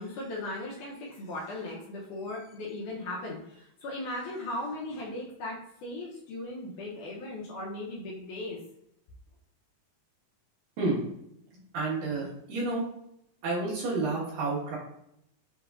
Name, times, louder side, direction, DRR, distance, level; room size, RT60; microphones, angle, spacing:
voice 1, 0.0-8.6, left 2 dB, 75° left, -3 dB, 2.0 m, -37 dB
voice 2, 11.7-12.9 13.4-14.8, right 3 dB, 70° right, -6 dB, 3.0 m, -30 dB
6.6 x 3.1 x 2.4 m, 0.76 s
omnidirectional pair, 4.1 m